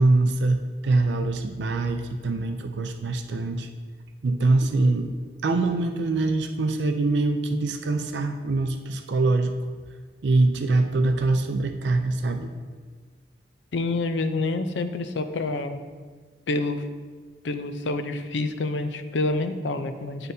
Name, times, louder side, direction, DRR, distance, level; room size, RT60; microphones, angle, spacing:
voice 1, 0.0-3.7 4.2-5.1 5.4-9.5 10.2-12.5, right 2 dB, 75° right, 6 dB, 0.4 m, -23 dB
voice 2, 13.7-15.8 16.5-16.9 17.4-20.3, left 2 dB, 85° left, 9 dB, 0.5 m, -27 dB
11.0 x 3.9 x 2.7 m, 1.5 s
head